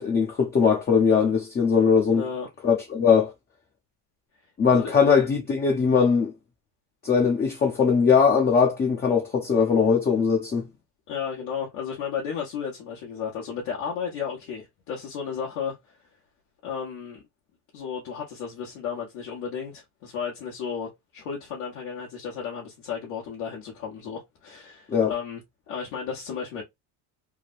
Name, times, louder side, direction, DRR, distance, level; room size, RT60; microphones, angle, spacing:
voice 1, 0.0-2.2 2.6-3.3 4.6-6.3 7.0-10.7 24.9-25.1, left 6 dB, 20° left, 0.7 m, -20 dB
voice 2, 2.1-2.5 4.7-4.9 11.1-16.0 16.6-17.2 17.7-25.4 25.7-26.6, left 7 dB, 75° left, 1.3 m, -33 dB
3.4 x 2.1 x 2.4 m
supercardioid pair, 105°, 45 cm